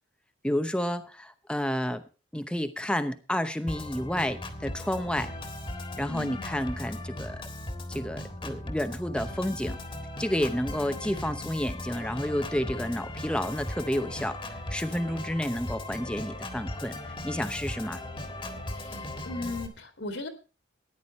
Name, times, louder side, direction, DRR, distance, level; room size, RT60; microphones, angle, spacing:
voice 1, 0.4-2.0 2.3-5.3 6.0-7.4 7.9-9.8 10.2-16.9 17.2-18.0, equal, 5° left, 9 dB, 0.8 m, -30 dB
Organ, 3.7-19.7, left 1 dB, 25° left, 1.7 m, -38 dB
voice 2, 6.1-6.7 18.7-20.3, left 2 dB, 65° left, 7 dB, 2.1 m, -38 dB
14.0 x 10.5 x 4.3 m, 0.33 s
head